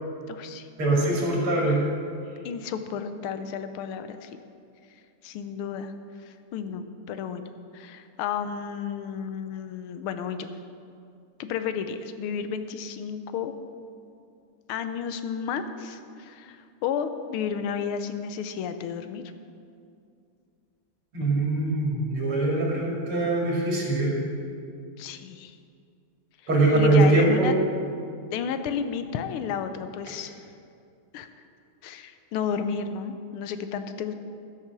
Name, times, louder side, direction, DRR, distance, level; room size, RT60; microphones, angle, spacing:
voice 1, 0.3-0.7 2.4-4.3 5.2-5.9 6.3-7.5 7.7-10.5 11.4-13.5 14.7-19.2 25.0-25.5 26.7-27.6 28.3-30.4 31.1-31.3 31.8-34.1, left 7 dB, 80° left, 9 dB, 1.5 m, -32 dB
voice 2, 0.8-1.8 21.1-24.1 26.5-27.5, right 2 dB, 85° right, -3 dB, 3.1 m, -22 dB
12.5 x 6.4 x 6.0 m, 2.4 s
omnidirectional pair, 2.4 m